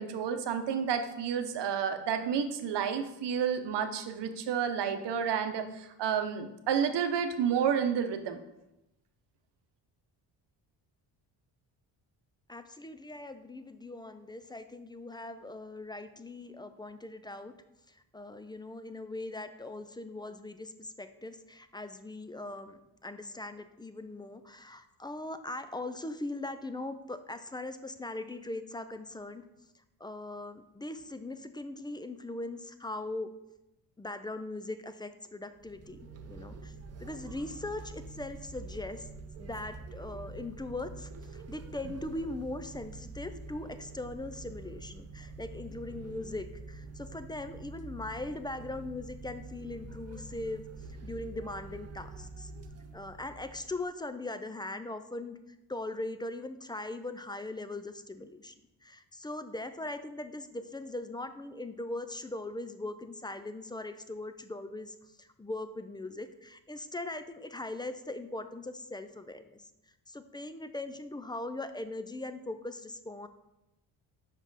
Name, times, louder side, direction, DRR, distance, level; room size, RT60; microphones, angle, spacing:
voice 1, 0.0-8.4, right 7 dB, 65° right, 8 dB, 0.9 m, -30 dB
voice 2, 12.5-17.5 17.9-29.4 30.0-33.3 34.0-36.7 37.0-39.1 39.4-50.6 51.0-52.5 52.9-55.4 55.7-58.5 58.8-69.6 70.1-73.3, left 2 dB, 10° left, 10 dB, 0.4 m, -40 dB
sound 1, 35.6-53.8, right 3 dB, 35° right, 0.6 m, -46 dB
5.7 x 5.0 x 4.0 m, 0.90 s
supercardioid pair, 70°, 46 cm